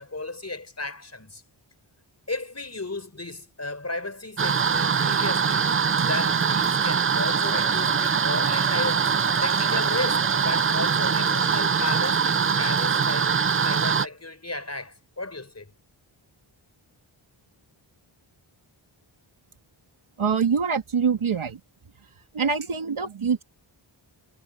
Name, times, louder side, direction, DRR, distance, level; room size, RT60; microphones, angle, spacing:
voice 1, 0.0-1.4 2.3-5.7 6.1-9.1 9.4-13.4 13.6-15.7, left 2 dB, 30° left, 4.9 m, -34 dB
sound 1, 4.4-14.1, right 6 dB, 30° right, 0.4 m, -23 dB
voice 2, 20.2-21.6 22.3-23.4, right 6 dB, 90° right, 2.7 m, -24 dB
wide cardioid pair, 70°, 48 cm